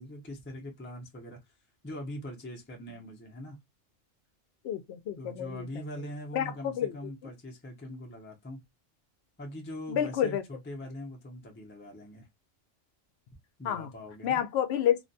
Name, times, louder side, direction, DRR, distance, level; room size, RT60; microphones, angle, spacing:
voice 1, 0.0-1.4 1.8-3.6 5.2-8.6 9.4-12.3 13.6-14.4, left 1 dB, 15° left, 0.5 m, -42 dB
voice 2, 4.6-5.7 6.3-6.9 9.9-10.4 13.6-13.9 14.2-15.1, left 10 dB, 65° left, 0.7 m, -29 dB
2.4 x 2.2 x 2.5 m
omnidirectional pair, 1.3 m